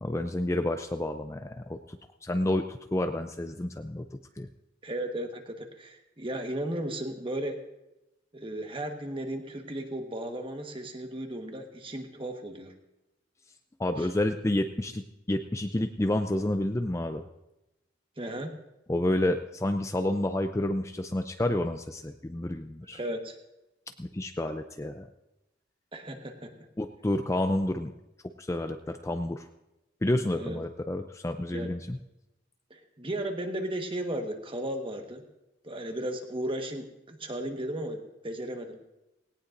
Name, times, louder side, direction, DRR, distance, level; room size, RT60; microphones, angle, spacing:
voice 1, 0.0-4.1 4.4-4.5 13.8-17.2 18.9-23.0 24.0-25.1 26.8-27.9 28.4-29.5 30.0-32.0, left 1 dB, 15° left, 7 dB, 0.4 m, -29 dB
voice 2, 4.8-7.6 8.3-12.7 14.0-14.1 18.2-18.5 22.9-23.4 25.9-26.5 30.4-30.6 31.5-31.7 32.7-35.2 35.6-38.8, right 1 dB, 30° right, 4 dB, 1.4 m, -35 dB
18.0 x 18.0 x 2.6 m, 0.94 s
head